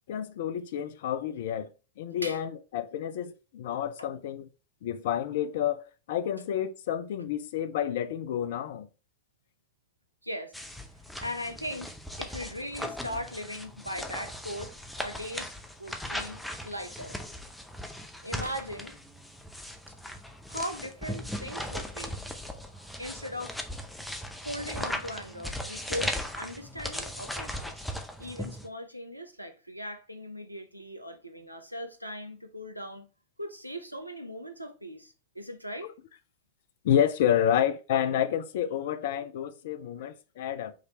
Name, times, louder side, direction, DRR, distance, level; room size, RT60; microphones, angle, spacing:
voice 1, 0.1-1.7 2.0-4.5 4.8-8.9 36.8-40.7, left 10 dB, 55° left, 0.4 m, -29 dB
voice 2, 10.2-10.5 11.2-11.9 12.2-15.5 15.8-17.2 18.2-18.9 19.9-20.2 20.5-22.2 22.8-23.6 24.4-27.8 28.2-33.1 33.4-35.9, equal, 90° right, 0.6 m, -39 dB
sound 1, 10.5-28.7, left 1 dB, 5° left, 0.6 m, -38 dB
4.9 x 3.1 x 2.9 m
figure-of-eight pair, 90°, 0 cm